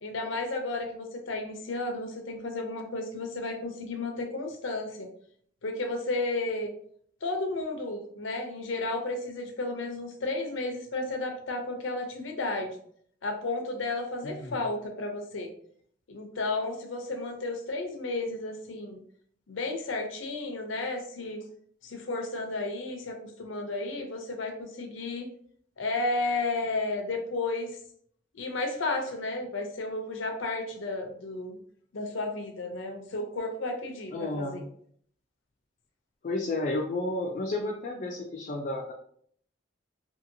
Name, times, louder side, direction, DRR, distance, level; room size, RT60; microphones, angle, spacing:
voice 1, 0.0-5.1 5.6-6.7 7.2-12.8 13.2-15.5 16.1-19.0 19.5-21.4 21.8-25.3 25.8-27.7 28.3-31.6 31.9-34.6, left 2 dB, 90° left, 4 dB, 0.6 m, -33 dB
voice 2, 14.2-14.6 34.1-34.6 36.2-38.9, left 2 dB, 45° left, 0 dB, 0.3 m, -32 dB
2.8 x 2.7 x 2.6 m, 0.62 s
head